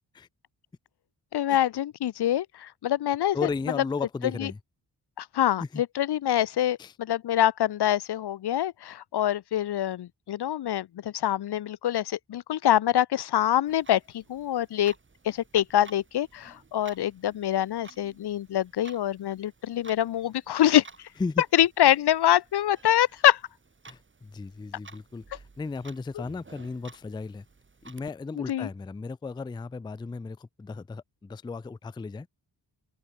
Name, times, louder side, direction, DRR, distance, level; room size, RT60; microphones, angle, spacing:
voice 1, 1.3-3.5 4.4-4.5 5.2-14.9 15.2-20.9 21.5-23.4 26.1-26.2 28.4-28.7, left 12 dB, 70° left, 0.7 m, -25 dB
voice 2, 3.3-4.6 5.6-5.8 6.8-6.9 21.2-21.4 23.9-27.4 27.8-32.3, left 4 dB, 10° left, 0.3 m, -35 dB
Clock, 13.7-28.1, right 4 dB, 30° right, 3.6 m, -53 dB
open air
wide cardioid pair, 160°, 41 cm